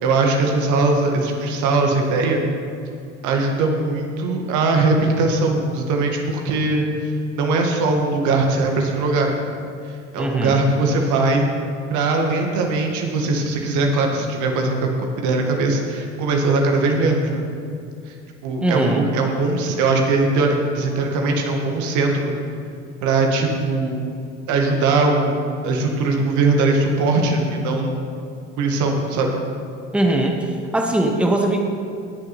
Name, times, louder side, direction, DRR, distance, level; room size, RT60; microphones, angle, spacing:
voice 1, 0.0-2.4 3.2-6.9 7.3-9.4 10.1-11.5 11.9-14.9 15.2-17.4 18.4-22.3 23.0-24.0 24.5-25.4 25.6-27.9 28.6-29.3, right 3 dB, 55° right, 2 dB, 1.9 m, -20 dB
voice 2, 10.2-10.6 18.6-19.1 29.9-31.6, right 1 dB, 5° right, 2 dB, 1.2 m, -20 dB
18.5 x 6.9 x 4.5 m, 2.4 s
figure-of-eight pair, 65°, 36 cm